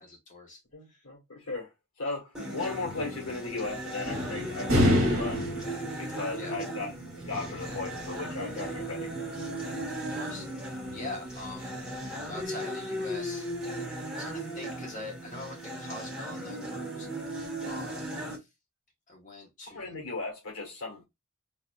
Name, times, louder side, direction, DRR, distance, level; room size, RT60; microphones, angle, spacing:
voice 1, 0.0-0.6 0.9-1.0 6.4-6.6 10.1-10.5 10.9-11.7 12.2-13.5 14.2-17.1 17.6-18.4 19.1-20.0, left 2 dB, 35° left, 1.5 m, -43 dB
voice 2, 0.7-1.7 2.0-5.5 6.0-6.9 7.2-9.1 19.7-21.0, left 3 dB, 65° left, 1.9 m, -36 dB
sound 1, 2.3-18.4, right 1 dB, 5° right, 1.6 m, -37 dB
sound 2, 2.7-12.4, equal, 60° right, 1.6 m, -33 dB
4.2 x 2.8 x 2.6 m
head